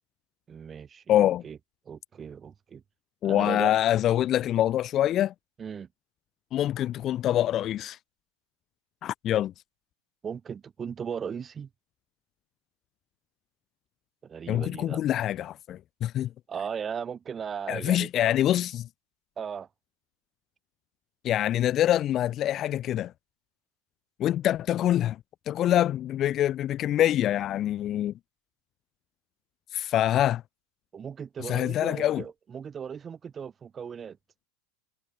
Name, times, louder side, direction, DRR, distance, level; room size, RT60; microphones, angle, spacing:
voice 1, 0.5-1.6 1.9-2.8 3.2-3.7 5.6-5.9 10.2-11.7 14.2-15.0 16.5-18.3 19.4-19.7 30.9-34.2, right 7 dB, 25° right, 4.3 m, -37 dB
voice 2, 1.1-1.4 3.2-5.3 6.5-8.0 9.0-9.5 14.5-16.3 17.7-18.9 21.2-23.1 24.2-25.2 25.5-28.1 29.7-30.4 31.4-32.2, left 12 dB, 35° left, 0.7 m, -25 dB
hypercardioid pair, 120°, 0 cm